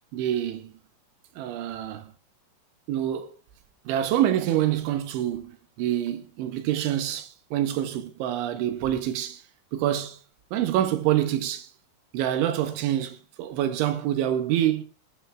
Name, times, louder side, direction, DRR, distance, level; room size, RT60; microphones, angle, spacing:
voice 1, 0.1-0.8 1.4-2.1 2.9-3.3 3.9-9.4 9.7-10.2 10.5-11.7 12.1-14.8, right 12 dB, 75° right, 3.8 m, -26 dB
19.0 x 12.0 x 3.7 m
omnidirectional pair, 5.6 m